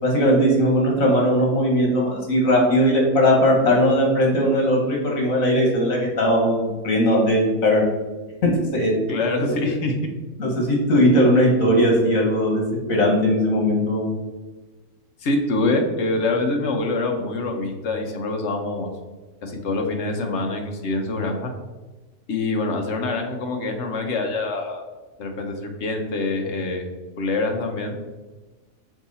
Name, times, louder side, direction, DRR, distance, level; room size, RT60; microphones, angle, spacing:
voice 1, 0.0-7.8 8.4-8.9 10.4-12.6 12.9-14.1, equal, 75° left, -1 dB, 1.9 m, -19 dB
voice 2, 9.1-9.9 10.9-11.0 15.2-18.9 19.4-21.5 22.3-24.8 25.2-26.8 27.2-27.9, left 2 dB, 60° left, 3 dB, 1.2 m, -25 dB
6.0 x 4.1 x 4.1 m, 1.2 s
omnidirectional pair, 1.4 m